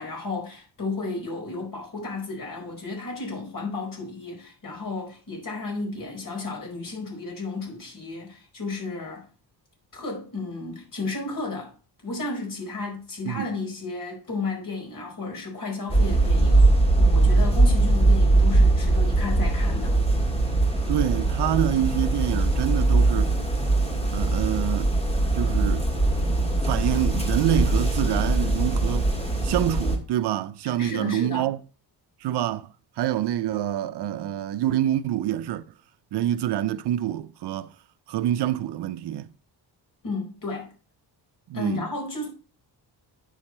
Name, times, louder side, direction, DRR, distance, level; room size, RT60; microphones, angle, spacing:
voice 1, 0.0-9.3 9.9-11.7 12.0-16.7 17.0-20.0 30.6-31.5 40.0-40.7 41.5-42.3, left 3 dB, 50° left, 4.7 m, -33 dB
sound 1, 15.9-30.0, right 2 dB, 15° left, 1.8 m, -21 dB
voice 2, 20.9-23.3 24.1-24.9 25.3-25.9 26.7-29.1 29.4-31.6 32.2-32.7 33.0-35.6 36.1-37.8 38.1-39.3 41.5-41.9, right 12 dB, 70° right, 0.6 m, -26 dB
8.9 x 6.3 x 4.3 m
cardioid pair, 130°, 42 cm